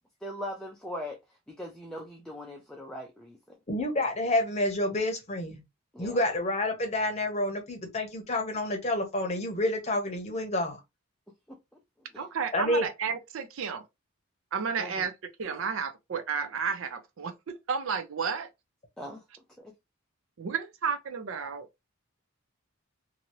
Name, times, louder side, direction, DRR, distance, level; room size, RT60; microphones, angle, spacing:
voice 1, 0.2-1.2 1.5-3.6 5.9-6.2 12.1-12.2 14.8-15.1 19.0-19.2 19.6-19.7, left 1 dB, 5° left, 0.4 m, -40 dB
voice 2, 3.7-5.6 6.0-10.8 12.5-12.9, left 1 dB, 30° left, 0.8 m, -29 dB
voice 3, 12.2-13.8 14.5-18.5 20.4-21.7, right 6 dB, 65° right, 0.5 m, -32 dB
2.8 x 2.6 x 2.9 m
head